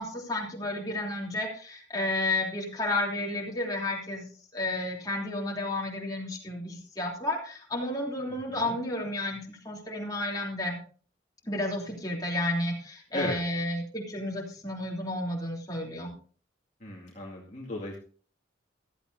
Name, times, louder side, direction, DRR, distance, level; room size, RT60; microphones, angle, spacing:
voice 1, 0.0-10.8 11.4-16.1, left 1 dB, 20° left, -2 dB, 3.2 m, -32 dB
voice 2, 16.8-18.0, left 1 dB, 40° left, -2 dB, 2.3 m, -35 dB
15.5 x 14.0 x 2.7 m, 0.43 s
head